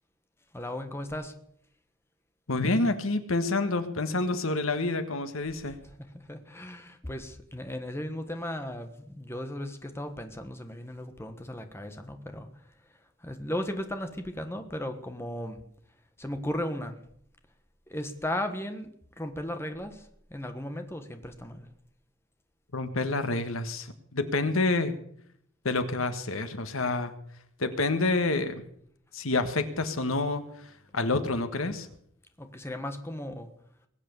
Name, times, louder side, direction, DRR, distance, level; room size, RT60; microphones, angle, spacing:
voice 1, 0.5-1.3 6.1-12.5 13.2-15.6 16.2-17.0 17.9-18.9 19.2-21.7 32.4-33.5, left 1 dB, 10° left, 7 dB, 1.3 m, -36 dB
voice 2, 2.5-5.8 22.7-25.0 25.6-27.1 27.6-28.6 29.1-31.9, left 2 dB, 85° left, 10 dB, 1.5 m, -28 dB
21.0 x 8.5 x 6.9 m, 0.68 s
head